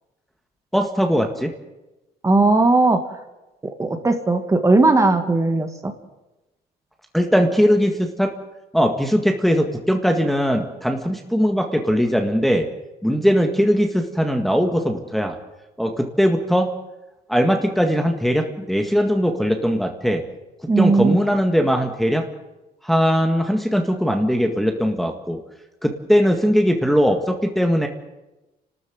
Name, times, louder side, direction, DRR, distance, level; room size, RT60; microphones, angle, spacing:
voice 1, 0.7-1.5 7.1-8.3 8.7-12.7 13.0-15.4 15.8-16.7 17.3-20.2 20.8-22.3 22.8-25.4 25.8-27.9, equal, ahead, 3 dB, 1.8 m, -20 dB
voice 2, 2.2-3.0 3.6-5.9 20.7-21.2, right 3 dB, 20° right, 6 dB, 2.1 m, -17 dB
29.5 x 13.0 x 7.9 m, 1.0 s
cardioid pair, 110°, 17 cm